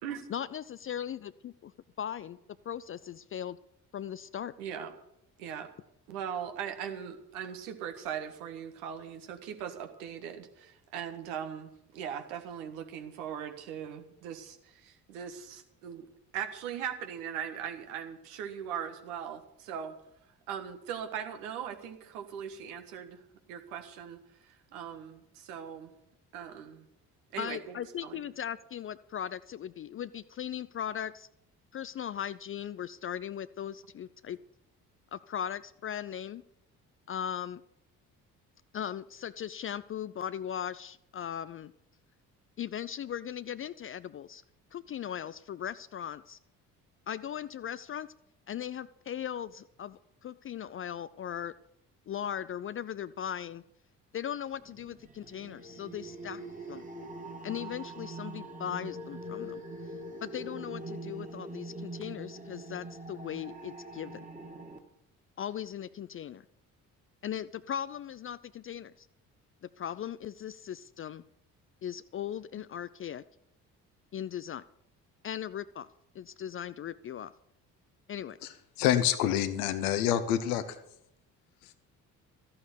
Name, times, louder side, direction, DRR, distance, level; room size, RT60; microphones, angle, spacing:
voice 1, 0.3-1.7 2.0-2.4 2.6-3.6 3.9-4.5 27.4-31.3 31.7-34.4 35.1-36.4 37.1-37.6 38.7-41.7 42.6-44.4 44.7-46.4 47.1-48.1 48.5-51.5 52.1-53.6 54.1-56.4 56.7-56.8 57.4-59.6 60.2-64.3 65.4-66.4 67.2-69.1 69.6-71.2 71.8-73.2 74.1-74.6 75.2-75.9 76.1-77.3 78.1-78.4, left 9 dB, 30° left, 16 dB, 0.5 m, -38 dB
voice 2, 4.6-4.9 5.4-5.7 6.1-16.0 16.3-19.9 20.5-23.2 23.5-24.2 24.5-25.9 26.3-26.8 27.3-28.2, right 8 dB, 70° right, 6 dB, 1.7 m, -39 dB
sound 1, 54.6-64.8, right 1 dB, 15° right, 2.2 m, -43 dB
voice 3, 78.8-80.6 81.6-81.7, left 11 dB, 70° left, 10 dB, 1.3 m, -27 dB
14.5 x 8.6 x 8.1 m, 0.78 s
figure-of-eight pair, 45°, 45 cm